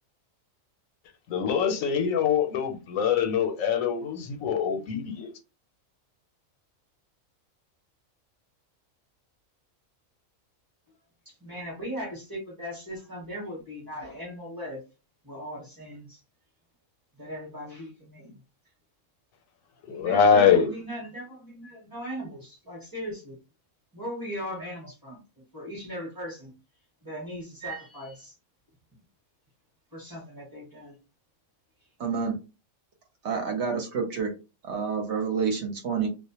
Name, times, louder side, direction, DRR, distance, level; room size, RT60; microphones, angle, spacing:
voice 1, 1.3-5.3 19.9-20.7, left 7 dB, 85° left, 1.0 m, -23 dB
voice 2, 11.3-14.8 15.2-16.2 17.2-18.4 19.9-23.4 23.9-26.5 27.0-28.3 29.9-30.9, equal, 20° right, 0.9 m, -38 dB
voice 3, 32.0-32.4 33.2-34.3 34.6-36.1, right 6 dB, 60° right, 0.9 m, -28 dB
2.4 x 2.1 x 2.8 m
omnidirectional pair, 1.4 m